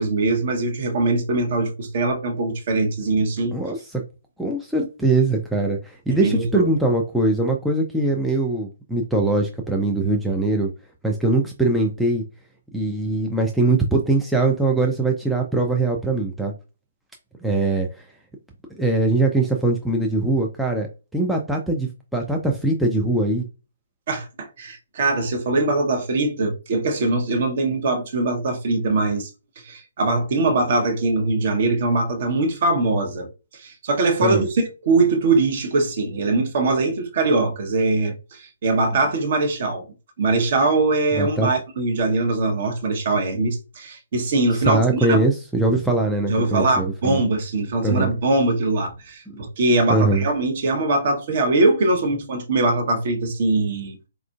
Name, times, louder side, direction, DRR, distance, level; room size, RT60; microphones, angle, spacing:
voice 1, 0.0-3.6 6.2-6.7 24.1-29.3 29.6-33.3 33.5-39.8 40.2-45.2 46.3-54.0, right 2 dB, 45° right, 0.8 m, -22 dB
voice 2, 3.5-4.0 4.4-10.7 11.0-12.2 12.7-16.5 17.4-18.0 18.8-20.9 21.1-23.4 34.2-34.4 41.2-41.5 44.6-47.2 47.8-48.1 49.3-49.4 49.9-50.3, right 2 dB, ahead, 0.3 m, -21 dB
4.2 x 2.4 x 2.3 m
figure-of-eight pair, 130°, 0 cm